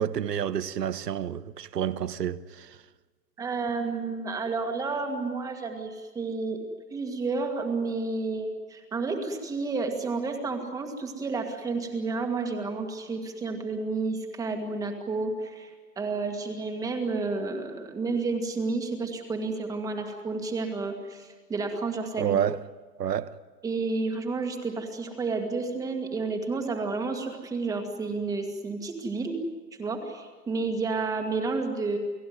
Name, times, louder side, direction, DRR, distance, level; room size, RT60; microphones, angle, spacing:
voice 1, 0.0-2.8 22.2-22.6 23.0-23.4, right 9 dB, 85° right, 1.3 m, -29 dB
voice 2, 3.4-6.6 6.9-22.4 23.6-29.4 29.8-32.0, right 3 dB, 5° right, 1.9 m, -31 dB
29.5 x 18.0 x 9.4 m
hypercardioid pair, 160°, 48 cm